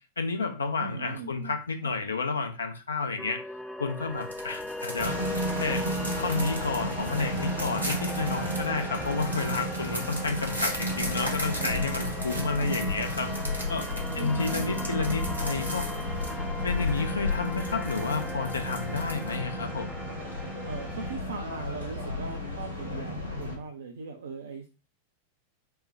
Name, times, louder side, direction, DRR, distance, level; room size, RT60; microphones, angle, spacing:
voice 1, 0.2-3.4 3.8-5.2 5.6-5.8 6.2-13.3 13.7-13.9 14.1-15.9 16.6-20.0, left 4 dB, 75° left, 6 dB, 0.7 m, -31 dB
voice 2, 0.8-1.9 12.4-12.8 14.1-14.9 20.6-24.8, right 4 dB, 65° right, 4 dB, 0.5 m, -40 dB
sound 1, 3.2-21.2, left 1 dB, ahead, 0.4 m, -39 dB
sound 2, 4.0-19.5, equal, 90° left, 1.6 m, -39 dB
sound 3, 5.0-23.6, left 1 dB, 85° right, 1.7 m, -33 dB
5.4 x 2.2 x 4.5 m, 0.32 s
figure-of-eight pair, 90°, 0 cm